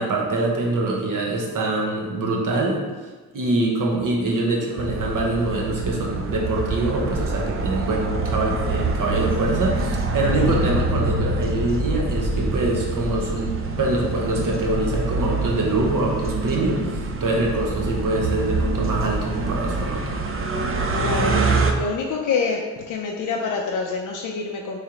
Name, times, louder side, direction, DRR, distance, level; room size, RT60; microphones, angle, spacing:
voice 1, 0.0-2.8 3.3-20.2, right 2 dB, 55° right, -1 dB, 1.0 m, -24 dB
sound 1, 4.8-21.7, right 3 dB, 35° right, 0.5 m, -25 dB
voice 2, 21.0-24.8, left 5 dB, 55° left, 0 dB, 0.5 m, -27 dB
3.7 x 3.2 x 2.9 m, 1.3 s
cardioid pair, 70°, 39 cm